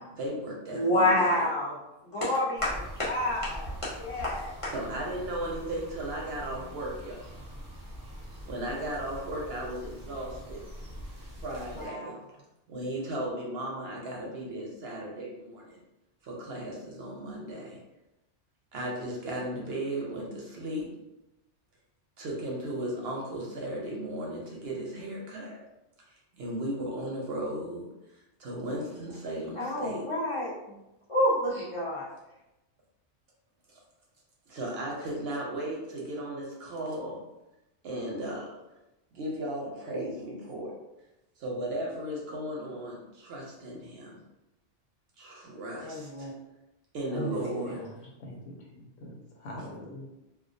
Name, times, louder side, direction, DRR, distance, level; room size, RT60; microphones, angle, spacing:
voice 1, 0.2-1.4 4.7-7.4 8.3-10.6 11.4-12.1 12.7-15.8 16.2-17.8 18.7-20.9 22.2-25.6 26.1-30.0 33.7-33.8 34.5-37.2 37.8-38.5 39.1-40.7 41.4-44.1 45.2-46.3 46.9-47.8, right 1 dB, 65° right, -2 dB, 0.7 m, -36 dB
voice 2, 0.7-1.8 2.1-4.7 11.7-12.1 29.6-30.8 31.1-32.1 45.8-46.3 47.1-47.8, left 1 dB, 40° left, -8 dB, 0.5 m, -29 dB
sound 1, 2.6-11.9, equal, 20° right, 0.7 m, -43 dB
voice 3, 47.1-50.1, right 1 dB, 80° left, -1 dB, 0.9 m, -42 dB
2.3 x 2.1 x 2.5 m, 0.94 s
omnidirectional pair, 1.3 m